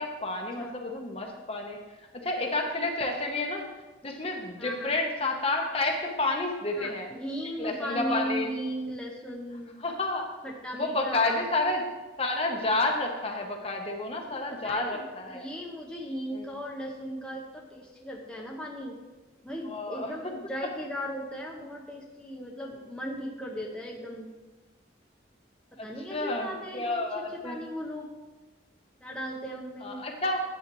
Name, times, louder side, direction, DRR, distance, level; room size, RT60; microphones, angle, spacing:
voice 1, 0.0-1.8 2.2-3.6 4.0-7.1 7.6-8.5 9.8-10.3 10.7-11.8 12.2-15.5 16.3-16.4 19.7-20.1 25.8-27.6 29.8-30.4, left 2 dB, 30° left, 2 dB, 0.9 m, -30 dB
voice 2, 4.6-5.0 6.7-9.7 10.4-11.4 14.3-19.0 19.4-24.3 25.8-28.1 29.0-30.0, equal, 5° left, -2 dB, 0.8 m, -37 dB
10.5 x 8.0 x 3.1 m, 1.2 s
head